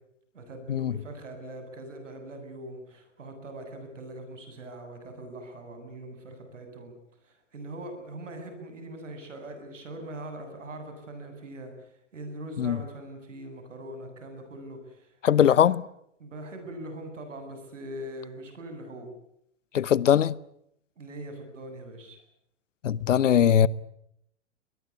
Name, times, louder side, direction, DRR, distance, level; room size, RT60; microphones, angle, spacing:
voice 1, 0.3-6.9 7.2-11.7 12.1-15.7 16.2-19.1 21.0-22.2, right 1 dB, 80° right, 7.8 m, -42 dB
voice 2, 15.2-15.8 19.7-20.4 22.8-23.7, left 9 dB, 80° left, 1.0 m, -21 dB
23.0 x 21.0 x 9.8 m
hypercardioid pair, 105°, 37 cm